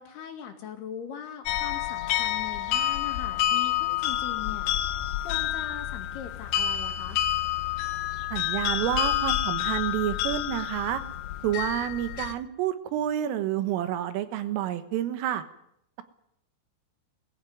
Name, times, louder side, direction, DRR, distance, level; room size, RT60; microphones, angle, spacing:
voice 1, 0.0-4.7 5.2-7.2, left 8 dB, 60° left, 5 dB, 3.7 m, -40 dB
sound 1, 1.5-12.4, left 12 dB, 75° left, 3.4 m, -28 dB
voice 2, 8.3-11.0 11.4-15.4, right 11 dB, 80° right, 10 dB, 3.9 m, -29 dB
21.5 x 15.0 x 9.4 m, 0.74 s
omnidirectional pair, 5.8 m